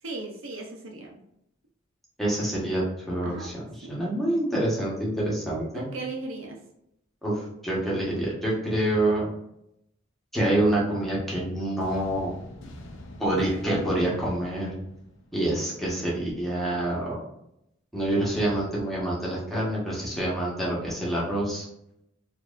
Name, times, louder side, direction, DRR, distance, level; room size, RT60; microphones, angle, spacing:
voice 1, 0.0-1.2 3.2-3.5 3.8-4.0 5.7-6.6, right 3 dB, 85° right, 0 dB, 0.9 m, -37 dB
voice 2, 2.2-3.6 3.9-5.9 7.2-9.3 10.3-12.3 13.2-14.7 15.3-17.2 17.9-21.7, right 1 dB, ahead, -6 dB, 1.3 m, -27 dB
sound 1, 11.8-15.8, left 1 dB, 70° left, 0.6 m, -45 dB
4.5 x 2.7 x 2.5 m, 0.78 s
head